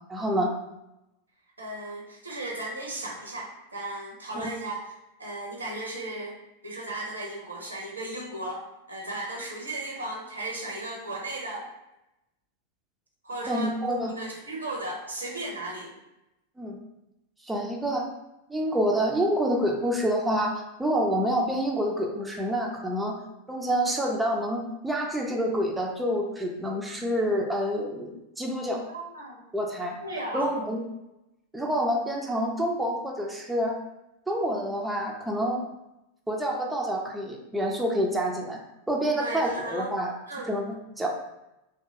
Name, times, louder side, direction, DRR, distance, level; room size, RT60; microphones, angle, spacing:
voice 1, 0.1-0.5 4.3-4.5 13.5-14.1 16.6-16.7 17.4-18.1 18.5-23.2 23.5-28.8 29.5-30.0 30.3-30.8 31.5-33.7 34.3-35.6 36.3-38.6 38.9-40.1 40.5-41.1, equal, 5° right, 0 dB, 0.4 m, -27 dB
voice 2, 1.6-4.9 5.2-6.4 6.6-8.6 8.9-11.6 13.2-13.7 14.2-15.9 28.9-29.4 30.0-30.6 39.2-39.9 40.3-40.6, right 2 dB, 75° right, -1 dB, 0.7 m, -35 dB
2.9 x 2.6 x 2.8 m, 0.92 s
figure-of-eight pair, 90°, 0 cm